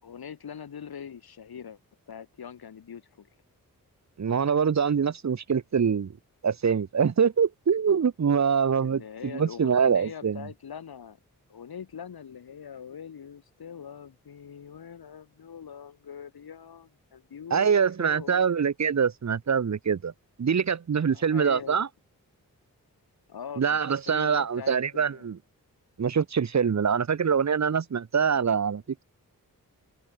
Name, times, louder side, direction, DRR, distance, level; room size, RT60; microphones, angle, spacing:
voice 1, 0.0-1.8 2.1-3.3 8.8-11.2 11.5-18.5 21.1-21.9 23.3-25.3 28.3-28.6, left 7 dB, 85° left, 6.7 m, -43 dB
voice 2, 4.2-6.1 6.4-10.4 17.5-20.1 20.4-21.9 23.6-25.4 26.0-29.0, right 6 dB, 50° right, 1.1 m, -24 dB
cardioid pair, 45°, 36 cm